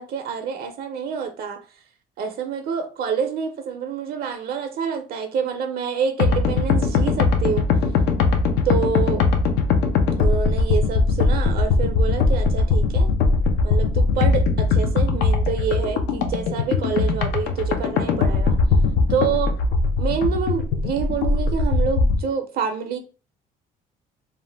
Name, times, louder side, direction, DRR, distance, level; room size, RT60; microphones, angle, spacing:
voice 1, 0.0-1.6 2.2-7.7 8.6-9.2 10.2-13.1 13.6-18.6 19.1-19.6 20.0-23.0, right 7 dB, 60° right, 0.5 m, -27 dB
sound 1, 6.2-22.2, left 4 dB, 90° left, 0.5 m, -20 dB
2.6 x 2.0 x 3.2 m
cardioid pair, 110°, 17 cm